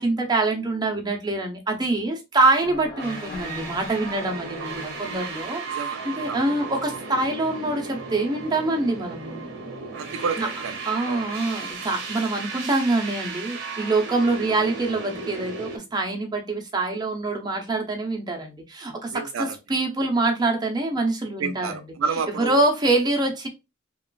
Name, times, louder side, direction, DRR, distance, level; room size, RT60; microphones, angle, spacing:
voice 1, 0.0-9.4 10.4-10.5 10.8-21.8 22.4-23.5, right 2 dB, 20° right, 0.6 m, -25 dB
sound 1, 2.6-5.5, left 3 dB, 50° left, 0.8 m, -41 dB
sound 2, 3.0-15.8, right 4 dB, 55° right, 0.8 m, -35 dB
voice 2, 5.7-6.4 9.9-10.8 11.0-11.3 19.1-19.6 21.4-22.6, right 5 dB, 90° right, 0.4 m, -30 dB
2.9 x 2.3 x 2.3 m
head